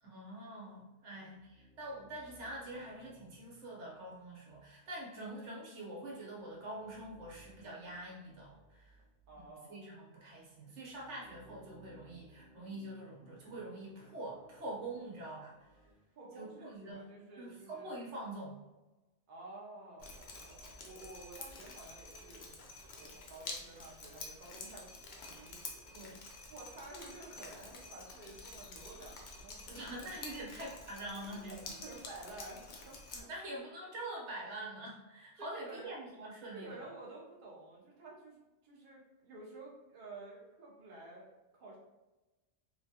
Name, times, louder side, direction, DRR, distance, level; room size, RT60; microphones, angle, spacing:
voice 1, 0.0-9.0 9.4-15.6 16.3-17.0 17.4-18.6 25.9-26.2 29.7-31.6 33.1-36.7, right 1 dB, 80° right, -3 dB, 1.1 m, -45 dB
sound 1, 1.1-9.6 10.2-15.9, equal, 85° left, 1.2 m, -63 dB
voice 2, 9.3-9.8 16.2-17.9 19.3-25.9 26.5-30.1 31.5-33.3 35.4-35.9 36.5-38.4 38.6-41.8, right 2 dB, 50° right, -3 dB, 0.7 m, -51 dB
Drip, 20.0-33.2, left 3 dB, 60° left, 0.5 m, -49 dB
3.0 x 2.2 x 2.8 m, 1.1 s
omnidirectional pair, 1.2 m